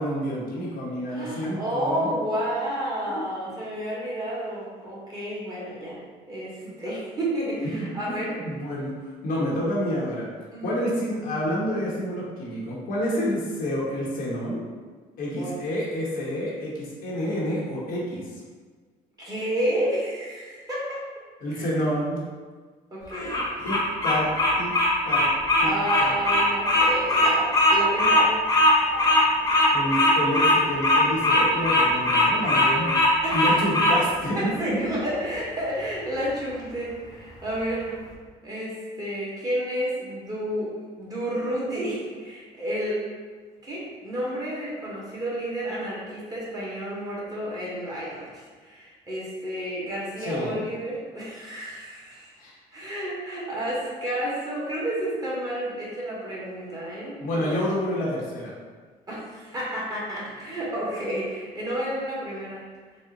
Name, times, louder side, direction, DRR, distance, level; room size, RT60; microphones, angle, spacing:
voice 1, 0.0-2.1 3.1-3.2 6.6-6.9 7.6-8.9 9.2-10.3 10.6-14.6 15.2-18.2 21.4-22.2 23.6-24.3 24.6-24.8 25.0-25.3 25.6-25.7 26.0-26.2 29.7-32.9 33.3-34.8 50.2-50.7 52.4-52.6 57.2-58.5, equal, 70° left, -5 dB, 1.1 m, -29 dB
voice 2, 1.1-6.0 6.3-8.6 10.5-10.8 15.4-15.6 19.2-21.0 21.5-21.7 22.9-23.4 25.6-28.3 33.2-33.6 34.3-37.9 38.4-40.7 41.0-43.0 43.6-52.3 52.7-57.6 59.1-62.6, right 1 dB, 25° right, -7 dB, 1.4 m, -31 dB
Bird vocalization bird call bird song, 23.1-34.0, left 1 dB, 20° left, 0.9 m, -20 dB
4.2 x 2.1 x 3.8 m, 1.5 s
cardioid pair, 110°, 15 cm